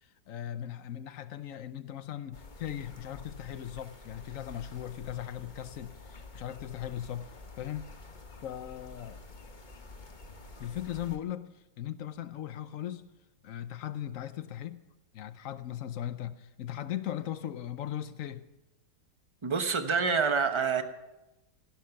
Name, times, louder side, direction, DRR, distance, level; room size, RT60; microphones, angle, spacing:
voice 1, 0.0-7.3 7.6-7.9 8.4-9.2 10.6-13.1 13.4-14.8 15.1-18.5, left 11 dB, 65° left, 0.9 m, -38 dB
sound 1, 2.3-11.2, left 3 dB, 30° left, 1.3 m, -49 dB
voice 2, 19.4-20.8, right 5 dB, 25° right, 0.6 m, -27 dB
16.5 x 12.0 x 5.8 m
omnidirectional pair, 2.0 m